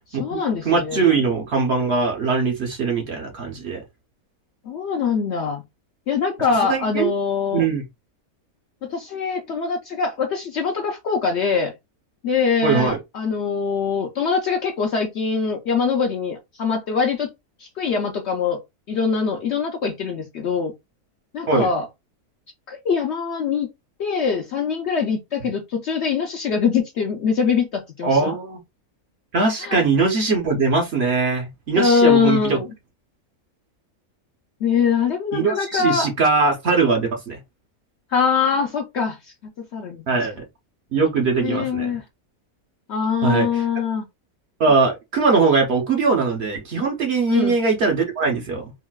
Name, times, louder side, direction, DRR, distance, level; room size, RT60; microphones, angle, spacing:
voice 1, 0.1-1.1 4.7-5.6 6.1-7.6 8.8-11.7 12.2-17.3 17.6-18.6 18.9-20.7 21.3-21.8 22.7-23.7 24.0-28.4 29.6-29.8 31.7-32.7 34.6-36.1 38.1-39.2 39.7-40.1 41.4-42.0 42.9-44.1 47.3-47.6, left 6 dB, 65° left, 0.7 m, -23 dB
voice 2, 0.6-3.8 6.7-7.1 7.5-7.8 12.6-13.0 21.5-21.7 28.0-28.6 29.3-32.6 35.3-37.4 40.1-40.4 40.9-42.0 43.2-43.6 44.6-48.7, right 4 dB, 55° right, 0.8 m, -21 dB
3.8 x 2.0 x 2.2 m
omnidirectional pair, 1.6 m